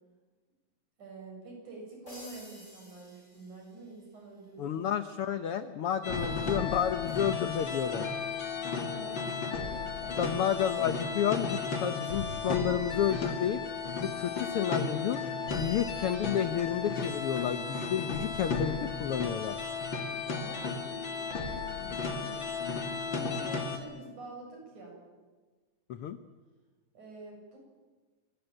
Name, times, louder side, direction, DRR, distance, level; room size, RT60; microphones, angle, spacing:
voice 1, 1.0-4.9 8.8-10.3 20.3-22.4 23.0-25.0 26.9-27.6, right 3 dB, 60° right, 0 dB, 9.2 m, -47 dB
sound 1, 2.1-4.1, left 1 dB, 20° left, 7.0 m, -51 dB
voice 2, 4.6-8.0 10.2-13.6 14.0-15.2 15.5-19.6 25.9-26.2, left 9 dB, 85° left, 10 dB, 1.2 m, -31 dB
sound 2, 6.0-23.8, left 4 dB, 35° left, 2.9 m, -34 dB
27.0 x 20.0 x 9.0 m, 1.3 s
omnidirectional pair, 3.8 m